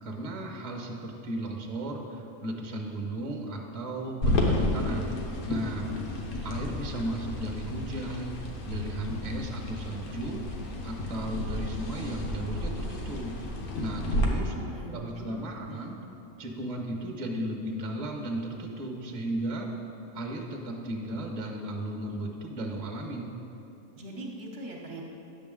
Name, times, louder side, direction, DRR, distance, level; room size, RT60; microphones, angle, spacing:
voice 1, 0.0-5.1 5.4-5.9 6.4-8.4 8.7-10.4 10.8-13.3 13.8-14.5 14.9-16.0 16.4-19.7 20.1-23.3, right 1 dB, 35° right, 1 dB, 0.8 m, -35 dB
sound 1, 4.2-14.3, left 1 dB, 85° left, 1.4 m, -32 dB
voice 2, 14.3-15.9 23.9-25.0, right 1 dB, 55° right, -1 dB, 1.0 m, -42 dB
9.0 x 6.2 x 3.7 m, 2.9 s
omnidirectional pair, 1.5 m